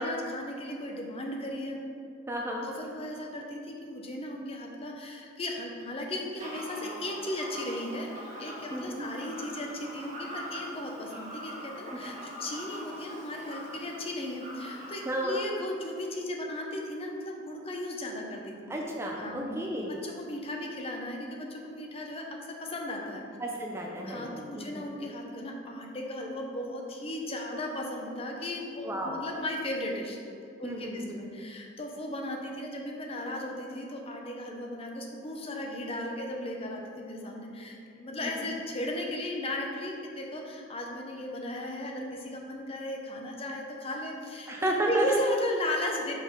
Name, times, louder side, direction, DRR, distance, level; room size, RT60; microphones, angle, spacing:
voice 1, 0.0-1.8 2.6-18.7 19.2-19.6 20.0-22.2 22.6-23.2 24.0-30.2 30.6-44.5 44.9-46.1, left 1 dB, 30° left, 0 dB, 0.6 m, -36 dB
voice 2, 2.3-2.7 8.7-9.0 11.9-12.2 15.1-15.4 18.7-19.9 23.4-24.8 28.8-29.2 30.6-31.2 38.2-38.4 44.5-45.2, right 1 dB, 15° right, -1 dB, 0.5 m, -32 dB
Fowl, 6.4-15.2, equal, 40° right, 1.1 m, -43 dB
4.9 x 3.8 x 5.3 m, 2.5 s
head